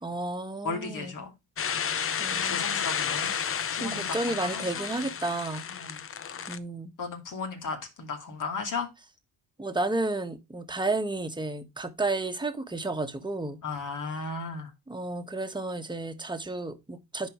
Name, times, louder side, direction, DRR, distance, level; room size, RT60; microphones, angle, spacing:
voice 1, 0.0-1.2 2.2-2.8 3.2-3.5 3.8-5.6 6.5-6.9 9.6-13.6 14.2-14.3 14.9-17.3, right 2 dB, 10° right, 1.4 m, -32 dB
voice 2, 0.6-1.3 2.3-3.3 3.8-4.2 4.4-4.9 5.7-6.0 7.0-8.9 13.6-14.7, left 4 dB, 55° left, 2.6 m, -35 dB
sound 1, 1.6-6.6, left 7 dB, 35° left, 0.7 m, -31 dB
10.5 x 4.5 x 3.1 m
cardioid pair, 80°, 38 cm